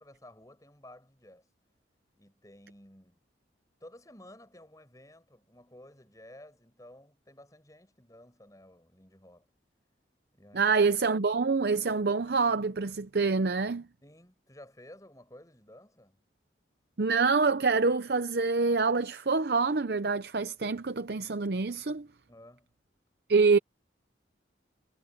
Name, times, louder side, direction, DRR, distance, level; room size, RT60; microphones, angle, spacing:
voice 1, 0.0-1.5 2.2-3.2 3.8-9.5 10.3-10.8 14.0-16.2 22.3-22.7, left 1 dB, 20° left, 7.6 m, -53 dB
voice 2, 10.5-13.8 17.0-22.1 23.3-23.6, right 4 dB, 55° right, 0.7 m, -26 dB
head